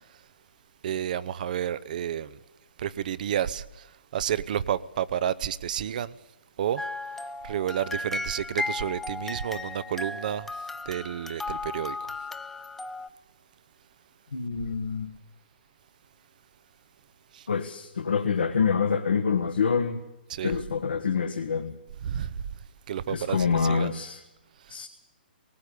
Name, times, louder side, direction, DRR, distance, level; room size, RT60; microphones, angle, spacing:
voice 1, 0.8-2.4 2.8-3.6 4.1-6.1 6.6-6.8 7.4-10.5 10.9-12.0 17.3-17.4 20.3-20.6 22.0-22.3 22.9-23.9, right 9 dB, 50° right, 0.7 m, -30 dB
sound 1, 6.8-13.1, left 3 dB, 5° left, 0.6 m, -35 dB
voice 2, 14.3-15.1 17.5-20.0 20.4-21.7 23.1-24.2 24.7-24.9, left 6 dB, 75° left, 1.5 m, -26 dB
19.0 x 17.5 x 8.4 m
figure-of-eight pair, 125°, 5 cm